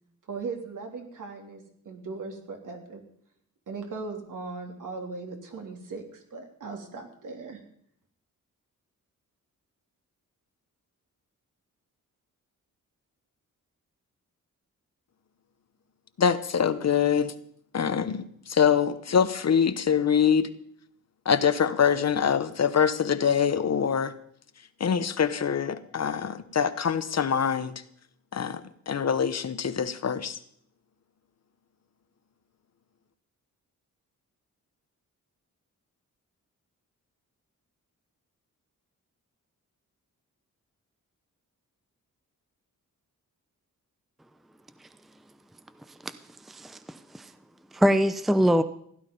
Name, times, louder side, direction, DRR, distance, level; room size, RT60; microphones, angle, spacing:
voice 1, 0.3-3.0 3.7-7.6, right 4 dB, 70° right, 3.2 m, -38 dB
voice 2, 16.2-17.3 17.7-20.5 21.2-24.1 24.8-27.7 28.3-30.4, left 7 dB, 50° left, 1.0 m, -24 dB
voice 3, 46.5-47.3 47.7-48.6, equal, ahead, 0.6 m, -23 dB
16.0 x 11.5 x 5.4 m
wide cardioid pair, 100°, 33 cm